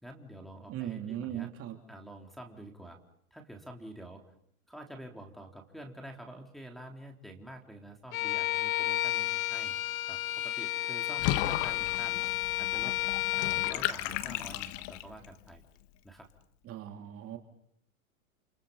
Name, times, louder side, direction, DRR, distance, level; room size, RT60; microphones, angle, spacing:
voice 1, 0.0-1.5 1.9-3.0 3.3-4.2 4.7-9.7 10.1-12.2 12.6-13.0 13.4-15.6 16.0-16.3, right 1 dB, ahead, 0 dB, 3.9 m, -47 dB
voice 2, 0.7-1.8 16.6-17.4, right 11 dB, 30° right, 4 dB, 2.9 m, -38 dB
Bowed string instrument, 8.1-13.8, left 16 dB, 70° left, 1.4 m, -31 dB
Water / Bathtub (filling or washing), 11.2-15.3, left 14 dB, 45° left, 1.5 m, -35 dB
29.5 x 29.0 x 5.6 m, 0.70 s
hypercardioid pair, 130°, 42 cm